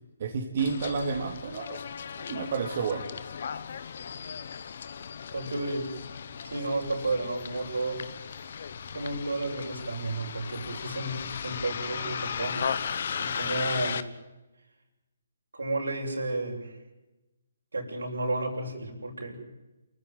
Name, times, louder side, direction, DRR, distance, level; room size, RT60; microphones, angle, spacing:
voice 1, 0.2-1.8 2.2-3.1, right 5 dB, 50° right, 2 dB, 2.9 m, -30 dB
Bus, 0.6-14.0, left 7 dB, 55° left, 1.4 m, -36 dB
voice 2, 5.3-5.9 6.4-8.0 8.9-12.7 13.2-14.1 15.5-16.8 17.7-19.4, right 2 dB, 90° right, 1 dB, 7.3 m, -32 dB
29.0 x 14.5 x 9.4 m, 1.0 s
hypercardioid pair, 150°, 0 cm